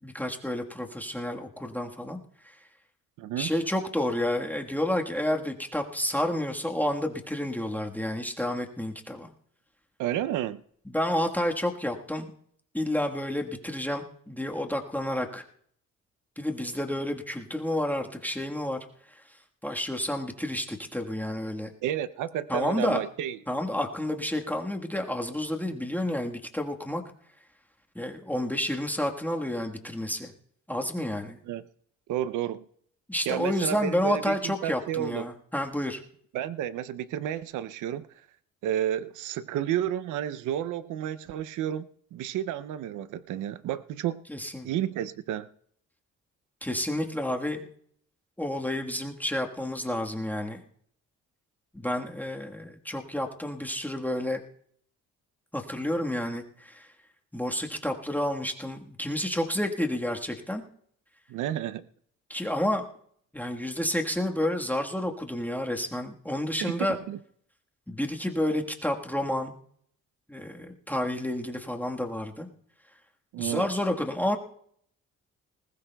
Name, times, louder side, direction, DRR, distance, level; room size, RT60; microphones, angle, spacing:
voice 1, 0.0-2.2 2.4-2.6 3.4-9.3 10.9-12.3 12.7-15.4 16.4-18.8 19.1-21.7 22.5-23.0 23.5-27.0 27.9-30.3 30.7-31.4 33.1-36.0 44.3-44.7 46.6-47.6 48.4-50.6 51.7-54.4 55.5-56.9 57.3-60.6 62.3-62.8 63.3-67.0 67.9-69.5 70.3-72.5 73.4-74.4, left 1 dB, 5° left, 1 dB, 1.4 m, -30 dB
voice 2, 3.2-3.5 10.0-10.6 21.8-23.4 31.5-31.6 32.1-32.6 33.3-35.3 36.3-38.1 38.6-44.2 44.6-45.5 61.3-61.9 66.6-67.2 73.3-73.7, right 11 dB, 80° right, 14 dB, 0.6 m, -31 dB
20.0 x 19.0 x 2.3 m, 0.65 s
cardioid pair, 90°, 30 cm